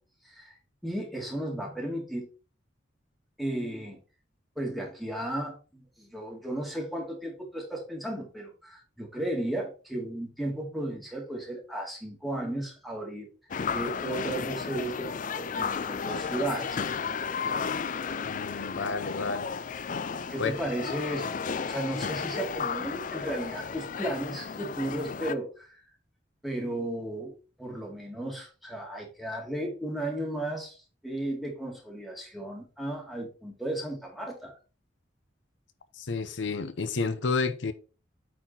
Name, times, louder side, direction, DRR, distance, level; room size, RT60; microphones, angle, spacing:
voice 1, 0.8-2.3 3.4-4.0 4.6-13.3 13.7-16.8 20.3-25.7 26.4-34.5, right 1 dB, ahead, 2.3 m, -34 dB
sound 1, 13.5-25.4, left 6 dB, 45° left, 0.4 m, -33 dB
voice 2, 18.2-19.5 20.4-20.5 36.0-37.7, left 4 dB, 80° left, 0.7 m, -30 dB
8.6 x 4.2 x 4.2 m
head